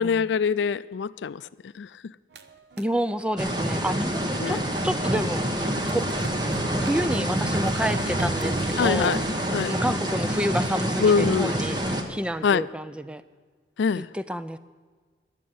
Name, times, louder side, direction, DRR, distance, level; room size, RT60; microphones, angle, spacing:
voice 1, 0.0-1.4 1.8-1.9 4.4-4.6 8.8-9.2 9.5-9.7 11.0-11.5 12.4-12.6 13.8-14.1, left 6 dB, 80° left, 0.4 m, -23 dB
sound 1, 2.3-5.0 5.3-9.4, right 2 dB, 70° right, 0.8 m, -39 dB
voice 2, 2.8-6.1 6.8-9.2 9.7-13.2 14.0-14.6, equal, 5° right, 0.3 m, -29 dB
sound 2, 3.4-12.0, right 1 dB, 25° right, 1.1 m, -27 dB
11.5 x 7.5 x 9.4 m
head